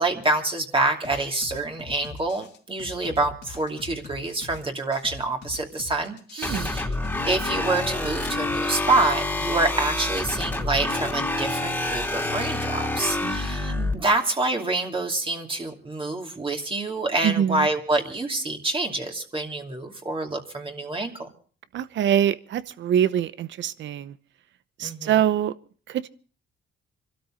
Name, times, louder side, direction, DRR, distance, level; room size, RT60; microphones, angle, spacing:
voice 1, 0.0-6.8 7.3-21.3 24.8-25.1, right 2 dB, 25° right, 2.6 m, -27 dB
sound 1, 1.0-9.0, left 4 dB, 60° left, 2.4 m, -42 dB
sound 2, 6.4-13.9, left 2 dB, 10° left, 2.7 m, -27 dB
voice 2, 6.4-6.7 13.2-14.0 17.2-17.7 21.7-24.2 24.8-25.6 25.9-26.1, right 10 dB, 70° right, 0.9 m, -25 dB
25.5 x 13.0 x 3.8 m
cardioid pair, 90°, 20 cm